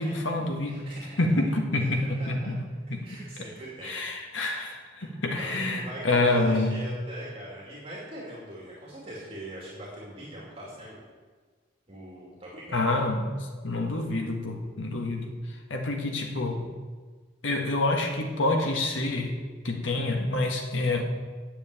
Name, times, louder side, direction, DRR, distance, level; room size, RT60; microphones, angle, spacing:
voice 1, 0.0-0.9 1.2-2.6 2.9-3.1 3.8-6.8 12.7-16.7 17.4-19.4 19.6-21.1, left 2 dB, 85° left, 3 dB, 1.6 m, -27 dB
voice 2, 0.6-1.2 1.8-2.5 3.0-4.7 5.0-11.1 11.9-12.8, right 1 dB, 30° right, -5 dB, 2.5 m, -42 dB
9.0 x 6.7 x 8.3 m, 1.4 s
head